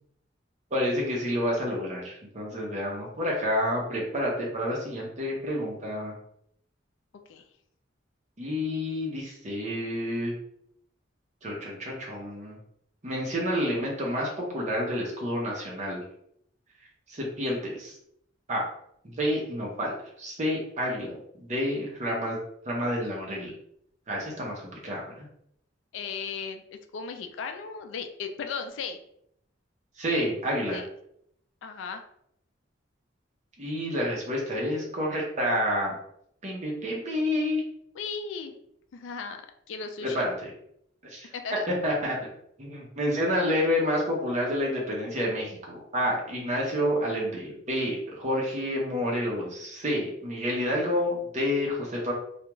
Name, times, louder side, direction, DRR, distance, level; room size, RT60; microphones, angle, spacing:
voice 1, 0.7-6.1 8.4-10.3 11.4-12.6 13.0-16.0 17.1-17.9 18.5-18.6 19.0-22.4 22.6-23.5 24.1-24.5 24.8-25.3 30.0-30.8 33.6-36.0 36.4-37.6 40.0-40.5 41.1-41.3 41.8-42.1 42.6-52.1, equal, 40° right, -3 dB, 0.8 m, -29 dB
voice 2, 25.9-26.6 26.9-29.0 30.7-30.9 31.6-32.0 37.9-38.5 38.9-39.4 39.7-40.3 41.3-41.7, left 5 dB, 80° left, 6 dB, 0.4 m, -36 dB
2.4 x 2.3 x 3.0 m, 0.72 s
head